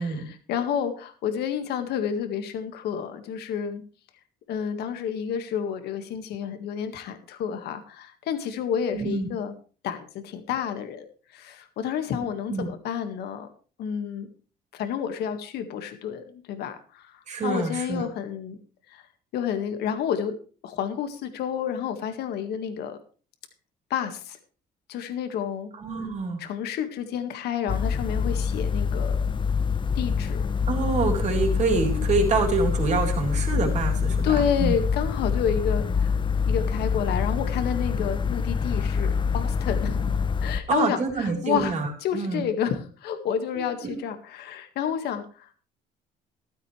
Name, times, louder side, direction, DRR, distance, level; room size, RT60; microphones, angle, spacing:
voice 1, 0.0-3.8 4.5-9.5 9.8-11.1 11.3-13.5 13.8-14.3 14.7-18.6 18.9-19.0 19.3-20.3 20.6-23.0 23.9-24.4 24.9-25.7 26.4-29.2 29.9-30.5 34.2-36.1 36.5-40.1 40.4-45.5, left 8 dB, 75° left, 7 dB, 1.8 m, -30 dB
voice 2, 8.9-9.3 12.5-12.7 17.3-18.0 25.7-26.4 30.7-34.7 40.7-42.4 43.5-43.9, right 4 dB, 45° right, 1 dB, 4.0 m, -26 dB
sound 1, 27.7-40.6, left 6 dB, 30° left, 0.7 m, -26 dB
14.0 x 12.5 x 3.3 m, 0.38 s
cardioid pair, 110°, 17 cm